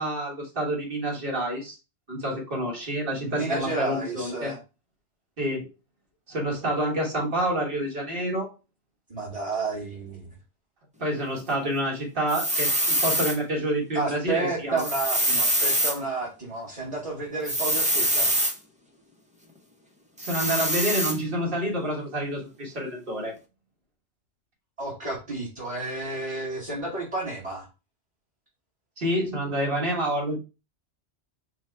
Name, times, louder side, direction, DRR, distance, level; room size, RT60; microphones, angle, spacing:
voice 1, 0.0-1.8 2.1-4.5 5.4-5.7 6.3-8.5 11.0-14.8 20.2-23.3 29.0-30.4, right 1 dB, 50° right, -2 dB, 1.6 m, -28 dB
voice 2, 3.2-4.6 9.1-10.3 13.9-18.3 24.8-27.7, right 3 dB, 30° right, -5 dB, 1.3 m, -31 dB
sound 1, 12.3-13.4 14.8-16.0 17.4-18.5 20.2-21.2, right 1 dB, 10° right, 0.4 m, -24 dB
4.5 x 2.2 x 4.3 m, 0.30 s
omnidirectional pair, 1.2 m